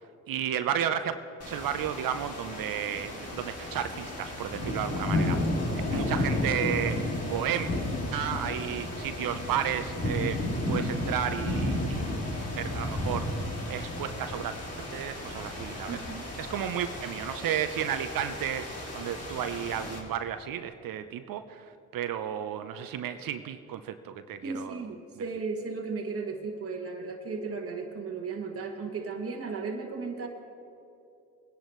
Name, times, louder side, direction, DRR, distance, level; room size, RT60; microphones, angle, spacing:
voice 1, 0.3-1.2 1.5-5.4 5.9-7.0 7.2-7.7 8.1-10.4 10.7-12.0 12.6-16.0 16.4-18.6 18.9-21.6 21.9-24.8, right 9 dB, 60° right, 10 dB, 0.7 m, -33 dB
sound 1, 1.4-20.0, left 1 dB, 40° left, 2.9 m, -33 dB
voice 2, 15.9-16.3 24.4-30.3, right 4 dB, 35° right, 1 dB, 1.4 m, -35 dB
21.0 x 10.5 x 3.1 m, 2.7 s
supercardioid pair, 60°, 38 cm